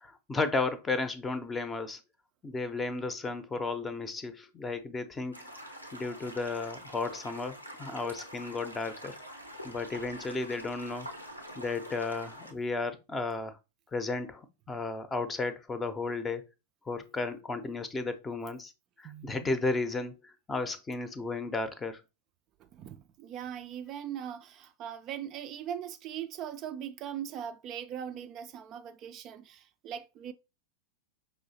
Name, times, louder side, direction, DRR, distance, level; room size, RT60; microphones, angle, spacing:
voice 1, 0.0-2.0 2.4-5.4 5.6-9.2 9.6-11.1 11.6-13.6 13.9-16.5 16.9-18.7 19.0-22.0, left 3 dB, 15° left, 0.6 m, -34 dB
sound 1, 5.3-12.5, equal, 90° left, 0.8 m, -45 dB
voice 2, 19.0-19.5 22.7-30.3, right 9 dB, 35° right, 0.3 m, -40 dB
5.3 x 3.0 x 2.7 m
figure-of-eight pair, 90°, 0 cm